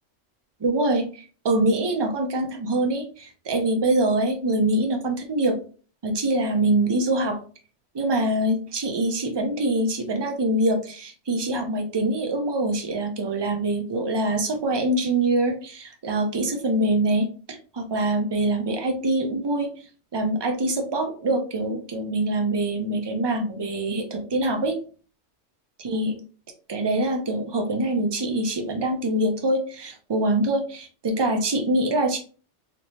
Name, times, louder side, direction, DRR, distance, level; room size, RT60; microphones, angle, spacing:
voice 1, 0.6-5.6 6.0-7.4 7.9-19.7 20.1-24.8 25.8-26.1 26.7-32.2, right 1 dB, 45° right, 4 dB, 0.3 m, -24 dB
3.1 x 2.9 x 2.7 m, 0.38 s
omnidirectional pair, 1.3 m